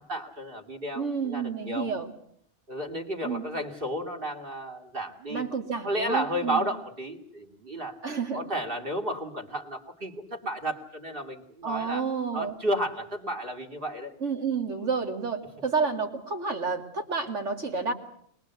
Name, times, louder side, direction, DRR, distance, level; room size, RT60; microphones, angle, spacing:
voice 1, 0.0-1.9 2.7-5.5 5.8-8.0 8.3-12.0 12.3-14.1, right 1 dB, 45° right, 5 dB, 2.8 m, -32 dB
voice 2, 1.0-2.1 3.2-3.4 5.3-6.6 8.0-8.4 11.6-12.6 14.2-17.9, right 5 dB, 70° right, 3 dB, 2.8 m, -30 dB
22.5 x 21.5 x 8.2 m, 0.67 s
omnidirectional pair, 1.3 m